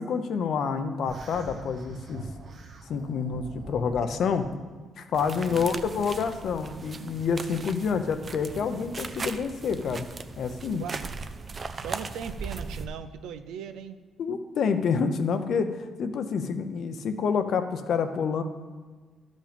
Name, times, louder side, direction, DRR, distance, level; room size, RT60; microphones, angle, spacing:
voice 1, 0.0-2.3 2.9-4.5 5.0-10.1 10.4-10.8 14.2-18.4, left 6 dB, 65° left, 8 dB, 0.7 m, -28 dB
sound 1, 1.0-4.5, right 3 dB, 55° right, 1.1 m, -43 dB
sound 2, 5.1-12.9, right 4 dB, 35° right, 0.5 m, -38 dB
voice 2, 10.8-11.1 11.8-14.0, right 8 dB, 85° right, 10 dB, 0.5 m, -38 dB
12.0 x 5.2 x 5.2 m, 1.4 s
cardioid pair, 90°, 0 cm